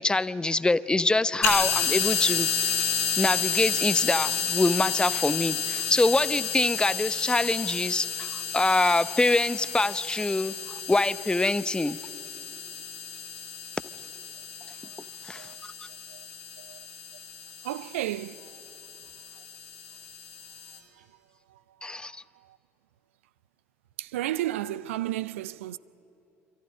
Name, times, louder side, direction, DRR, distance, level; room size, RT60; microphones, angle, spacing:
voice 1, 0.0-2.5 3.2-8.3 8.5-10.5 10.9-12.0 15.3-15.5 21.8-22.1, left 2 dB, 10° left, 0.7 m, -24 dB
sound 1, 1.4-20.8, left 6 dB, 80° left, 3.6 m, -31 dB
voice 2, 17.6-18.4 24.0-25.8, right 14 dB, 70° right, 0.5 m, -32 dB
27.5 x 14.5 x 9.6 m
figure-of-eight pair, 55°, 7 cm